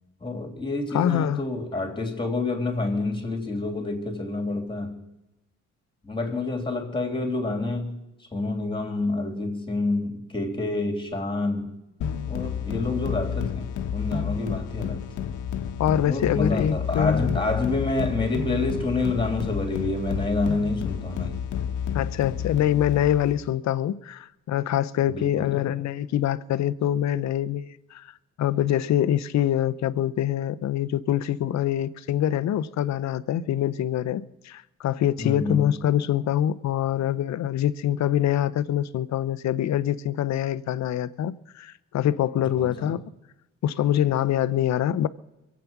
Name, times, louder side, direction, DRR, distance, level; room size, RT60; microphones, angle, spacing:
voice 1, 0.2-5.0 6.0-8.0 8.3-11.7 12.3-15.0 16.1-21.4 25.1-25.6 35.2-35.7 42.6-43.0, left 2 dB, 15° left, 3.4 m, -28 dB
voice 2, 0.9-1.4 15.8-17.4 21.9-28.1 28.4-43.0 43.6-45.1, left 11 dB, 65° left, 0.8 m, -25 dB
sound 1, 12.0-23.5, left 8 dB, 80° left, 1.2 m, -30 dB
23.0 x 8.5 x 6.0 m
cardioid pair, 90°, 30 cm